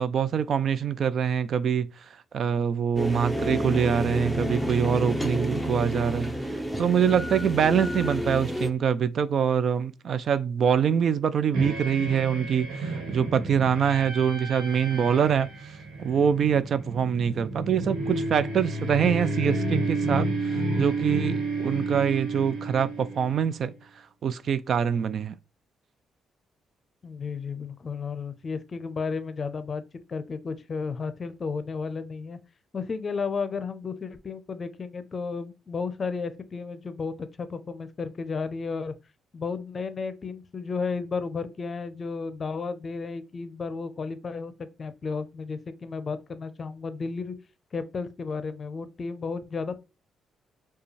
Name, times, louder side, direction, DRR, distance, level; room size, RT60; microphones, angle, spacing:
voice 1, 0.0-1.9 2.3-6.4 6.8-15.5 16.0-23.7 24.2-25.3, right 7 dB, 55° right, 0.3 m, -24 dB
sound 1, 3.0-8.7, equal, 5° right, 0.7 m, -29 dB
sound 2, 11.5-23.6, right 2 dB, 90° right, 1.3 m, -31 dB
voice 2, 27.0-29.8 30.1-32.4 32.7-38.9 39.3-44.5 44.8-47.4 47.7-49.8, left 5 dB, 40° left, 0.6 m, -33 dB
4.9 x 2.3 x 3.2 m
cardioid pair, 90°, 0 cm